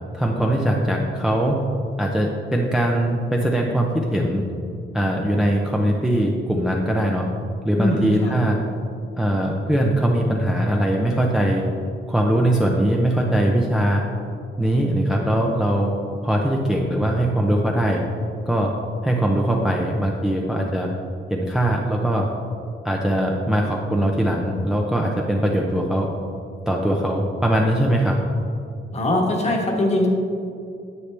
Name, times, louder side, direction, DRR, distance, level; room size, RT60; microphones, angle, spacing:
voice 1, 0.1-1.6 2.0-4.4 4.9-7.3 7.6-8.6 9.2-11.6 12.1-14.0 14.6-15.9 16.2-18.0 18.5-18.7 19.0-20.9 21.3-22.3 22.8-26.1 26.7-28.2, right 1 dB, 5° right, -1 dB, 0.5 m, -21 dB
voice 2, 7.8-8.4 28.9-30.1, left 1 dB, 30° left, 0 dB, 1.3 m, -22 dB
9.6 x 8.2 x 3.3 m, 2.5 s
wide cardioid pair, 165°, 21 cm